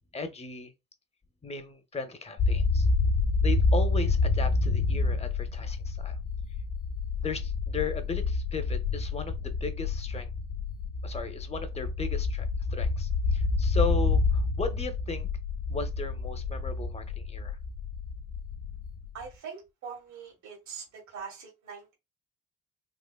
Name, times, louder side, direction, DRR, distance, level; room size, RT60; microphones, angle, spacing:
voice 1, 0.1-0.7 1.4-2.9 3.4-6.2 7.2-10.3 11.0-15.3 15.7-17.6, left 4 dB, 20° left, 0.7 m, -36 dB
sound 1, 2.4-19.2, left 3 dB, 80° left, 1.0 m, -28 dB
voice 2, 19.1-21.9, right 6 dB, 70° right, 1.3 m, -43 dB
3.7 x 2.9 x 2.3 m
cardioid pair, 90°, 30 cm